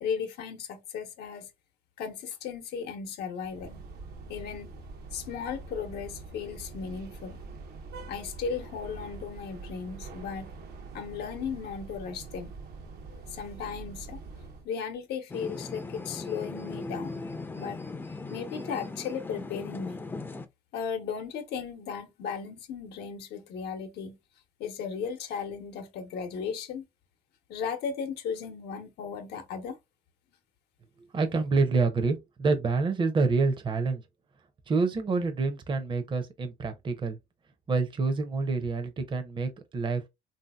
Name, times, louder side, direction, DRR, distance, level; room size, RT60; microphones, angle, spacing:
voice 1, 0.0-1.5 2.0-3.8 4.3-4.7 5.1-7.4 8.1-10.5 10.9-12.5 13.1-14.2 14.6-17.2 17.5-17.8 18.3-20.0 20.7-24.2 24.6-26.8 27.5-29.8, left 6 dB, 75° left, 0.8 m, -36 dB
sound 1, 3.4-14.7, right 4 dB, 70° right, 0.7 m, -44 dB
sound 2, 15.3-20.5, left 3 dB, 10° left, 0.4 m, -38 dB
voice 2, 31.1-34.0 34.7-37.2 37.7-40.1, right 4 dB, 30° right, 0.6 m, -27 dB
3.4 x 2.7 x 2.2 m
cardioid pair, 110°, 17 cm